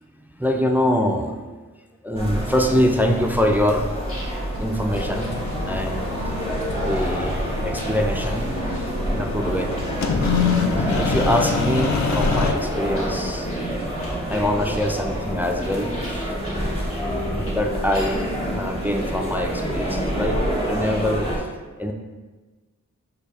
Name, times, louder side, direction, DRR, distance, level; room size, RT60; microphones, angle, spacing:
voice 1, 0.3-1.6 2.0-4.0 4.6-5.3 5.7-6.0 6.7-8.6 9.1-9.7 10.3-13.5 14.3-16.7 17.2-18.3 18.5-21.3 21.8-21.9, equal, 5° right, 3 dB, 0.3 m, -24 dB
sound 1, 2.1-21.4, equal, 20° left, 1.0 m, -27 dB
sound 2, 4.0-19.8, equal, 45° left, 1.3 m, -43 dB
sound 3, 5.0-12.5, left 5 dB, 65° left, 0.5 m, -26 dB
6.5 x 2.2 x 3.4 m, 1.3 s
wide cardioid pair, 80°, 31 cm